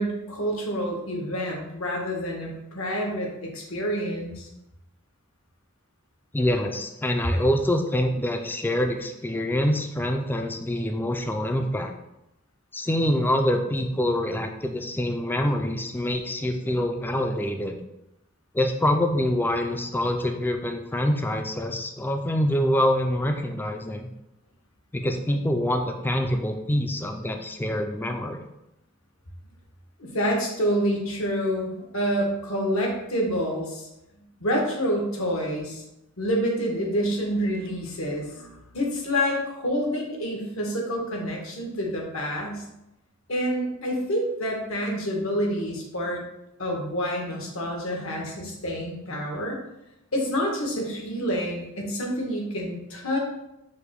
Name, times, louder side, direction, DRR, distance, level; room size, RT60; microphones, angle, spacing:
voice 1, 0.0-4.5 30.0-33.9 34.4-35.8 36.2-42.6 43.3-46.2 46.6-49.6 50.1-53.2, equal, 75° left, -1 dB, 1.2 m, -28 dB
voice 2, 6.3-11.9 12.7-17.8 18.5-24.1 24.9-28.4, left 1 dB, 10° left, 4 dB, 0.3 m, -25 dB
5.1 x 2.2 x 4.6 m, 0.88 s
head